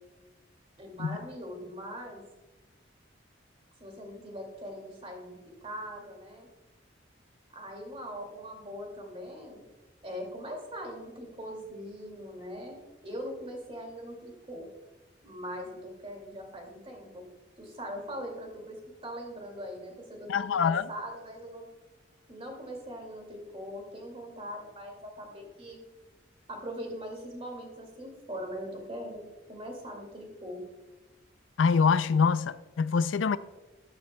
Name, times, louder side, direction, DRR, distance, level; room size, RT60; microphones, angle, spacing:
voice 1, 0.8-2.2 3.8-6.5 7.5-9.6 10.0-14.7 15.2-17.2 17.6-21.7 22.3-25.8 26.5-29.2 29.5-30.6, equal, 30° right, 2.2 m, -41 dB
voice 2, 20.3-20.9 31.6-33.4, left 5 dB, 90° left, 0.4 m, -25 dB
12.5 x 10.0 x 2.2 m
head